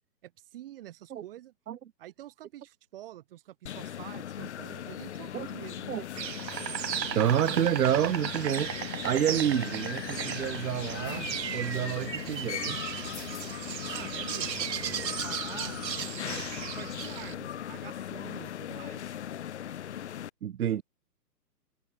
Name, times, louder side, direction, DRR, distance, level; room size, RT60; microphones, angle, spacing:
voice 1, 0.2-1.5 2.0-5.9 13.9-15.8 16.2-19.2, right 14 dB, 35° right, 2.4 m, -47 dB
sound 1, 3.7-20.3, left 10 dB, 45° left, 1.2 m, -39 dB
Insect, 6.1-17.3, right 9 dB, 80° right, 1.2 m, -36 dB
voice 2, 7.1-8.7 9.0-11.3 11.5-12.8 20.4-20.8, right 10 dB, 65° right, 0.8 m, -28 dB
hypercardioid pair, 155°, 50 cm